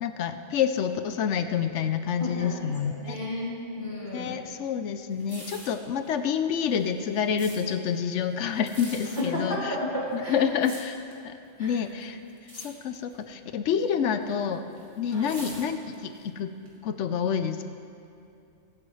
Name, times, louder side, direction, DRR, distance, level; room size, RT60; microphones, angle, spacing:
voice 1, 0.0-3.2 4.1-9.8 10.1-11.0 11.2-11.3 11.6-12.2 12.5-14.6 15.0-16.5 16.8-17.7, left 7 dB, 80° left, 9 dB, 0.9 m, -28 dB
voice 2, 2.2-4.3 9.2-10.4 11.6-11.7 15.1-15.3, left 1 dB, 40° left, -7 dB, 2.8 m, -32 dB
sound 1, 5.1-5.8 6.7-7.6 8.5-9.2 10.1-11.2 11.7-12.0 12.4-12.7 12.9-13.2 14.1-16.2 16.7-16.8, right 1 dB, 50° right, 2.3 m, -44 dB
23.0 x 8.6 x 3.2 m, 2.6 s
omnidirectional pair, 1.2 m